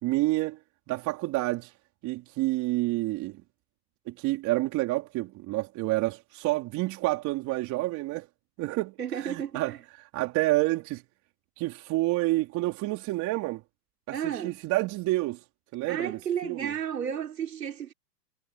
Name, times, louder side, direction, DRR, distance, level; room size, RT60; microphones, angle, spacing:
voice 1, 0.0-0.6 0.9-1.7 2.0-3.4 4.1-8.3 8.6-9.8 10.1-11.0 11.6-13.6 14.1-15.4 15.7-16.8, right 19 dB, 35° right, 4.1 m, -29 dB
voice 2, 9.0-9.8 14.1-14.6 15.9-17.9, right 9 dB, 85° right, 5.0 m, -32 dB
hypercardioid pair, 125°, 47 cm